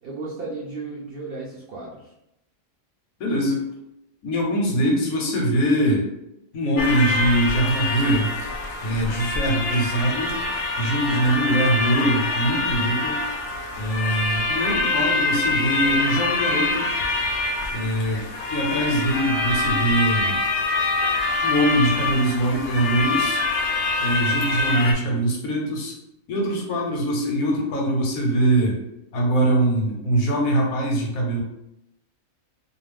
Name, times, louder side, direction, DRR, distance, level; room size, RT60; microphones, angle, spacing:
voice 1, 0.0-2.1, right 3 dB, 65° right, -4 dB, 0.5 m, -34 dB
voice 2, 3.2-3.6 4.2-6.1 6.5-8.3 8.8-10.4 10.8-13.2 13.8-16.9 17.7-20.4 21.4-23.4 24.0-25.9 26.3-28.8 29.1-31.4, right 1 dB, 90° left, 0 dB, 1.2 m, -22 dB
sound 1, 6.8-24.9, left 2 dB, 65° left, 0.8 m, -25 dB
2.4 x 2.4 x 3.2 m, 0.83 s
omnidirectional pair, 1.4 m